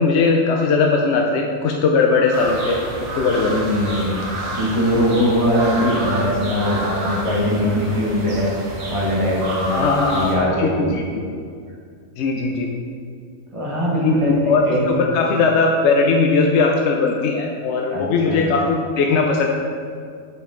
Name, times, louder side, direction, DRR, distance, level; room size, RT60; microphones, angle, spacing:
voice 1, 0.0-2.8 3.1-3.6 4.9-5.0 9.7-11.0 12.2-12.7 14.0-19.5, left 4 dB, 65° left, 1 dB, 0.7 m, -19 dB
sound 1, 2.3-10.3, right 1 dB, 65° right, 1.6 m, -28 dB
voice 2, 3.4-8.5 8.9-10.7 13.5-14.8 17.9-18.7, equal, 20° right, -5 dB, 1.5 m, -21 dB
8.1 x 5.2 x 3.8 m, 2.2 s
omnidirectional pair, 1.6 m